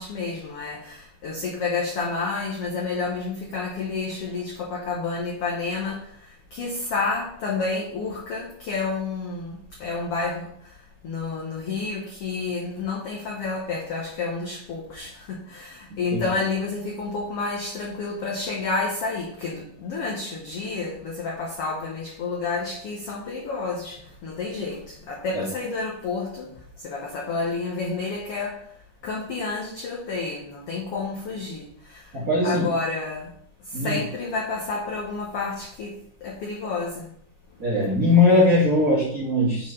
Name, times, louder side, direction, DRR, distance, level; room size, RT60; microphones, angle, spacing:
voice 1, 0.0-10.7 11.0-28.6 29.0-32.1 32.4-33.3 33.7-35.9 36.2-37.1, left 4 dB, 70° left, -2 dB, 1.4 m, -30 dB
voice 2, 32.1-32.6 33.7-34.0 37.6-39.7, left 2 dB, 35° right, -7 dB, 1.6 m, -20 dB
6.9 x 4.3 x 5.4 m, 0.68 s
omnidirectional pair, 4.1 m